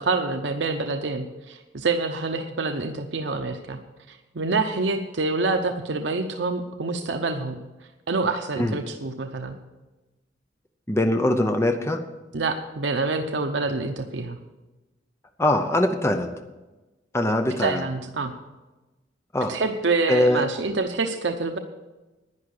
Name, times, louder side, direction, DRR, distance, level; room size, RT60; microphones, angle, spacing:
voice 1, 0.0-3.8 4.1-7.6 8.1-9.6 12.3-14.4 17.6-18.3 19.5-21.6, right 3 dB, 80° right, 6 dB, 0.8 m, -26 dB
voice 2, 10.9-12.0 15.4-16.3 17.1-17.8 19.3-19.5 20.1-20.4, left 1 dB, 15° left, 6 dB, 0.7 m, -22 dB
11.0 x 10.0 x 6.5 m, 1.1 s
head